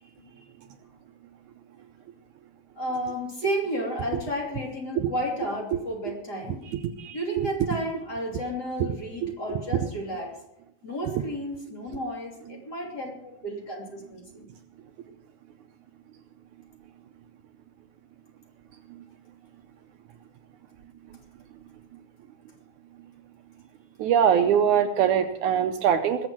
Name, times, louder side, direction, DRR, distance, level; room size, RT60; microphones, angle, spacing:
voice 1, 2.7-6.6 7.1-10.3 10.8-14.5, equal, 30° left, -1 dB, 3.2 m, -32 dB
voice 2, 6.7-7.5 9.2-9.3 24.0-26.3, right 8 dB, 75° right, 7 dB, 2.0 m, -23 dB
20.5 x 8.1 x 6.0 m, 0.83 s
omnidirectional pair, 3.9 m